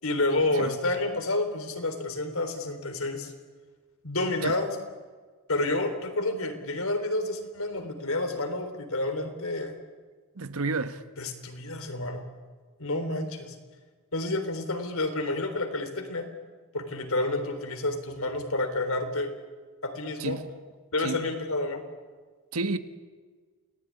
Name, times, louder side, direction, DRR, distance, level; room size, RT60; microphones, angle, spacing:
voice 1, 0.0-3.3 4.0-4.8 5.5-9.7 11.2-12.2 12.8-13.5 14.1-16.3 16.7-19.3 19.8-20.4 20.9-21.8, left 2 dB, 70° left, 3.8 m, -29 dB
voice 2, 10.4-11.0 20.2-20.6 21.0-21.2 22.5-22.8, right 3 dB, 80° right, 1.5 m, -31 dB
28.5 x 19.0 x 9.7 m
head